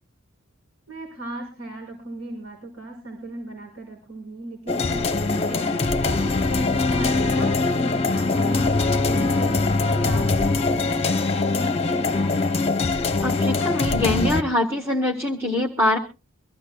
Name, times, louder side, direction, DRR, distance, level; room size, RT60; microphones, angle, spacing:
voice 1, 0.9-5.1 5.4-8.7 9.0-12.3, right 1 dB, 85° right, -3 dB, 4.9 m, -36 dB
sound 1, 4.7-14.4, left 3 dB, 30° left, 0.9 m, -22 dB
voice 2, 13.2-16.0, left 1 dB, 10° right, 0 dB, 1.2 m, -23 dB
24.0 x 14.0 x 2.3 m, 0.30 s
head